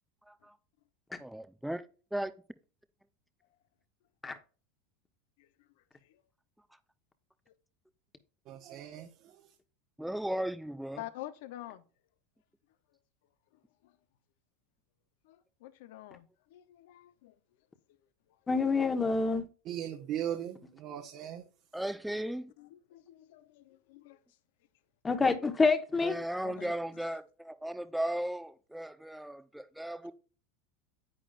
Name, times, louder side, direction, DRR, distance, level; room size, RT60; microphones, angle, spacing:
voice 1, 1.2-1.8 2.1-2.3 10.0-11.0 21.7-22.5 26.0-30.1, right 1 dB, 5° right, 0.8 m, -36 dB
voice 2, 8.5-9.5 19.7-21.4, right 10 dB, 50° right, 1.5 m, -38 dB
voice 3, 11.0-11.8 13.8-13.9 15.2-17.3 22.6-24.2 26.4-26.7, left 14 dB, 70° left, 0.9 m, -47 dB
voice 4, 18.5-19.5 25.0-26.2, left 4 dB, 15° left, 1.4 m, -27 dB
10.0 x 8.6 x 2.6 m
supercardioid pair, 115°, 0 cm